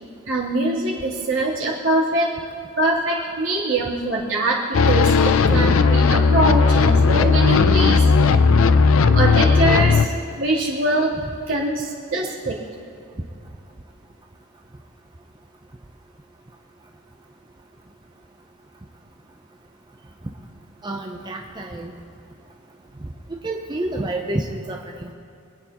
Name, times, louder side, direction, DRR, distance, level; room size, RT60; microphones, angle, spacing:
voice 1, 0.3-2.3 2.8-4.6 4.9-8.0 9.1-11.1 11.5-12.6, right 2 dB, 70° right, -6 dB, 3.2 m, -23 dB
sound 1, 4.7-10.0, left 4 dB, 80° left, 0.5 m, -16 dB
voice 2, 20.8-21.9 23.4-25.1, right 1 dB, 20° right, 1 dB, 0.7 m, -29 dB
26.0 x 9.1 x 3.0 m, 2.7 s
head